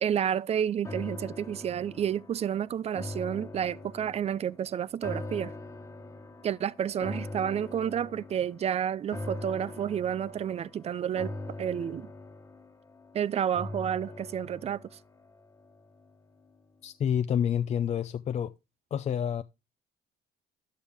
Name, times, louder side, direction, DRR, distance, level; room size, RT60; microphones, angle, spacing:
voice 1, 0.0-5.5 6.4-11.3 11.6-12.1 13.1-14.8, right 9 dB, 40° right, 0.4 m, -30 dB
sound 1, 0.8-16.1 16.5-16.6, left 2 dB, 20° left, 1.3 m, -42 dB
voice 2, 16.8-18.5 18.9-19.4, left 9 dB, 40° left, 0.5 m, -28 dB
11.5 x 8.8 x 3.5 m
cardioid pair, 110°, 17 cm